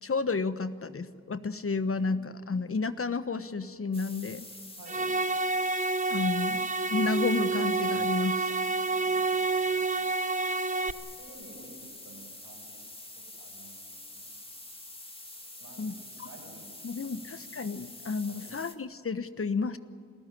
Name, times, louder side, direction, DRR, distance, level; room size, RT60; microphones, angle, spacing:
voice 1, 0.0-4.5 6.1-8.5 15.8-16.3 16.8-19.8, left 4 dB, 40° left, 12 dB, 1.2 m, -31 dB
sound 1, 3.9-18.7, left 1 dB, 15° left, 2.5 m, -46 dB
voice 2, 4.8-5.1 8.8-10.1 11.1-12.8 13.2-14.4 15.6-16.7 17.0-17.4 18.3-18.6, right 2 dB, 80° right, 0 dB, 7.3 m, -53 dB
sound 2, 4.9-10.9, right 3 dB, 20° right, 1.1 m, -28 dB
28.0 x 15.0 x 10.0 m, 2.3 s
supercardioid pair, 45°, 35 cm